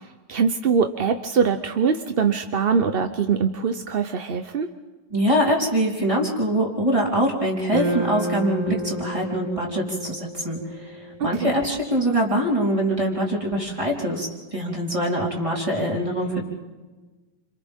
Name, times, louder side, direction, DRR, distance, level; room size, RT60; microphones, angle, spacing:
voice 1, 0.3-4.7 11.2-11.5, right 6 dB, 50° right, 7 dB, 0.7 m, -23 dB
voice 2, 5.1-16.4, equal, 15° right, -4 dB, 4.1 m, -24 dB
sound 1, 7.7-12.0, right 1 dB, 75° right, 7.6 m, -31 dB
30.0 x 27.0 x 3.7 m, 1.3 s
omnidirectional pair, 2.0 m